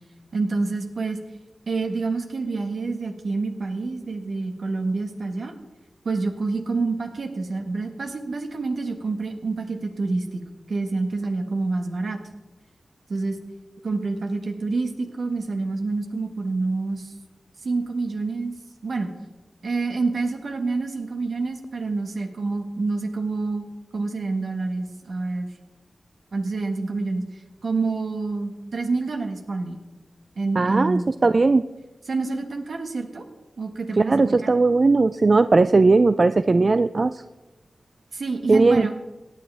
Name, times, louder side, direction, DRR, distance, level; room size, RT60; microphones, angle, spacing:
voice 1, 0.3-1.2 1.7-5.5 6.0-10.4 10.7-12.2 13.1-13.4 13.8-17.1 17.6-18.5 18.8-19.1 19.6-23.7 23.9-25.5 26.3-27.2 27.6-29.8 30.4-31.1 32.1-33.2 33.6-34.6 38.1-38.9, right 3 dB, 75° right, 4 dB, 1.7 m, -27 dB
voice 2, 30.6-31.6 34.1-37.1 38.5-38.9, right 3 dB, 50° right, 12 dB, 0.4 m, -18 dB
17.5 x 9.5 x 3.5 m, 1.1 s
cardioid pair, 45°, 0 cm